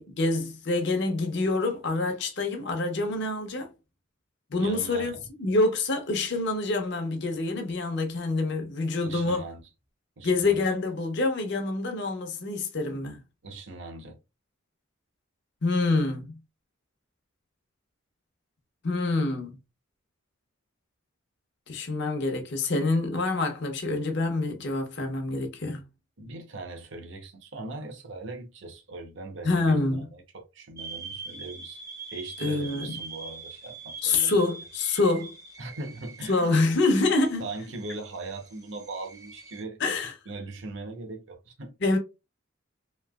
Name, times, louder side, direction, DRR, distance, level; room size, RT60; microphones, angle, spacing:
voice 1, 0.0-3.7 4.5-9.5 10.2-13.2 15.6-16.4 18.8-19.6 21.7-25.9 29.4-30.1 32.4-33.0 34.0-35.3 36.3-37.5 39.8-40.2 41.8-42.0, left 3 dB, 55° left, 0.8 m, -26 dB
voice 2, 4.6-5.2 9.0-9.6 10.2-10.6 13.4-14.1 26.2-31.8 32.1-34.3 35.6-36.5 37.4-39.8 40.3-41.7, right 2 dB, 60° right, 0.8 m, -40 dB
sound 1, 30.8-39.6, right 4 dB, 15° right, 0.6 m, -44 dB
3.1 x 2.8 x 2.2 m
head